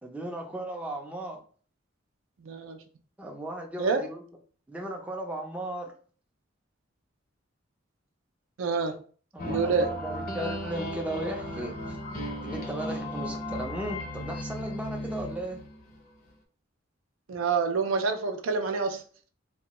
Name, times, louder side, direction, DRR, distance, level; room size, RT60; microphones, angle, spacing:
voice 1, 0.0-1.4 3.2-4.2 4.7-5.9 9.3-12.0 12.4-15.6, right 1 dB, 5° right, 0.4 m, -36 dB
voice 2, 2.4-2.8 3.8-4.1 8.6-9.0 9.5-9.9 17.3-19.0, right 4 dB, 80° right, 0.5 m, -27 dB
sound 1, 9.4-16.0, equal, 45° left, 0.5 m, -35 dB
3.0 x 2.2 x 2.9 m
head